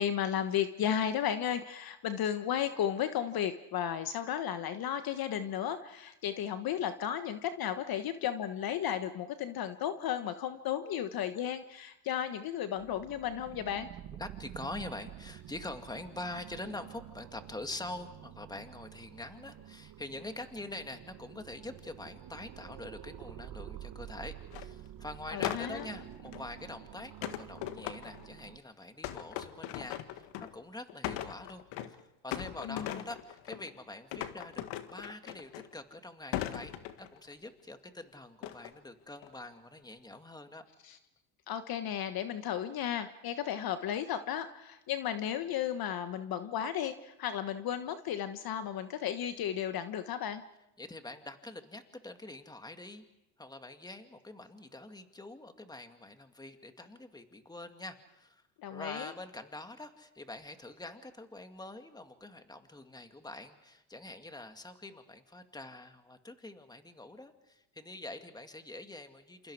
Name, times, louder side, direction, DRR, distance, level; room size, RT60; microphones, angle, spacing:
voice 1, 0.0-13.9 25.3-25.9 32.6-33.0 40.8-41.0 41.5-50.4 58.6-59.1, left 9 dB, 50° left, 10 dB, 1.3 m, -34 dB
sound 1, 12.8-28.6, right 11 dB, 45° right, 1.4 m, -49 dB
voice 2, 14.2-40.6 50.8-53.0 53.4-58.4 58.7-69.5, left 2 dB, 10° left, 7 dB, 2.2 m, -45 dB
sound 2, 24.5-24.7 25.4-26.5 27.2-28.4 29.0-30.6 30.9-32.0 32.3-33.7 34.1-35.9 36.3-37.3 38.4-38.8 39.2-39.6, left 12 dB, 65° left, 1.8 m, -39 dB
28.0 x 27.5 x 4.9 m, 0.91 s
supercardioid pair, 100°, 47 cm